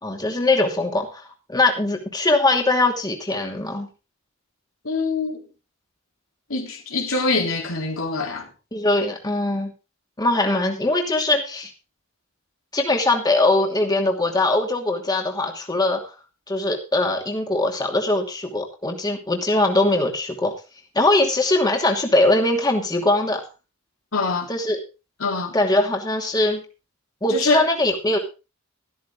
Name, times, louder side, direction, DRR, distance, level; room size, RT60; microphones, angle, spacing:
voice 1, 0.0-1.2 1.5-3.9 8.7-9.7 10.2-11.7 12.7-16.1 16.5-20.5 20.9-23.4 24.5-24.8 25.5-26.6 27.2-28.2, left 2 dB, 20° left, 2.6 m, -21 dB
voice 2, 4.9-5.4 6.5-8.5 24.1-24.5 25.2-25.5 27.3-27.6, left 3 dB, 90° left, 3.5 m, -24 dB
13.5 x 13.0 x 3.7 m
head